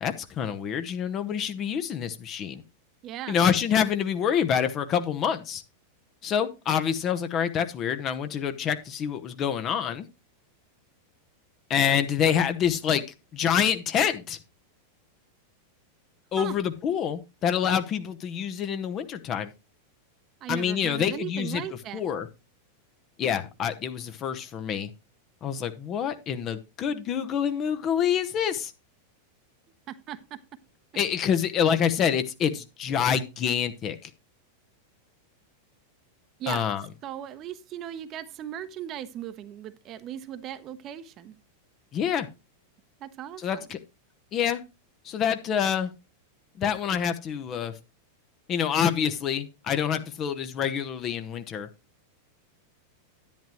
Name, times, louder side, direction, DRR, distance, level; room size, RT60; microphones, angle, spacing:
voice 1, 0.0-2.6 3.3-5.6 6.2-10.1 11.7-13.0 13.3-14.4 16.3-19.5 20.5-21.6 21.9-22.3 23.2-24.9 25.4-28.7 30.9-34.1 36.5-36.8 41.9-42.3 43.4-43.8 44.3-44.6 45.0-45.9 46.6-47.7 48.5-51.7, left 8 dB, 30° left, 1.0 m, -26 dB
voice 2, 3.0-3.4 16.4-16.6 20.4-22.0 29.9-30.4 36.4-36.7 37.0-41.3 43.0-43.6, right 10 dB, 35° right, 0.9 m, -37 dB
10.5 x 10.0 x 3.0 m
figure-of-eight pair, 90°, 0 cm